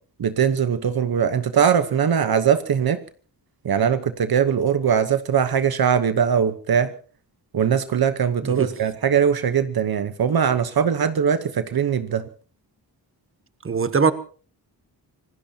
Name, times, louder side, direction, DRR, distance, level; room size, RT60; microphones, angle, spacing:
voice 1, 0.2-3.0 3.6-6.9 7.5-12.2, right 7 dB, 60° right, 1.1 m, -21 dB
voice 2, 13.6-14.1, right 5 dB, 30° right, 1.3 m, -21 dB
26.0 x 19.5 x 2.9 m
wide cardioid pair, 110°, 41 cm